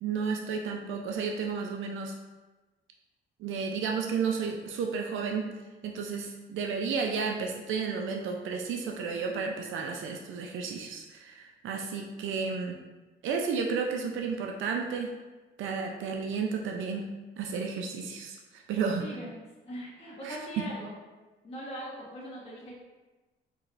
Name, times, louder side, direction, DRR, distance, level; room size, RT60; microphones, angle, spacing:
voice 1, 0.0-2.1 3.4-5.5 5.8-12.8 13.2-15.1 15.6-17.1 17.4-19.0 20.2-20.7, right 5 dB, 80° right, 2 dB, 0.5 m, -32 dB
voice 2, 18.9-20.9 21.4-22.8, equal, 30° left, -6 dB, 1.1 m, -41 dB
4.4 x 3.1 x 2.5 m, 1.2 s
cardioid pair, 90°, 20 cm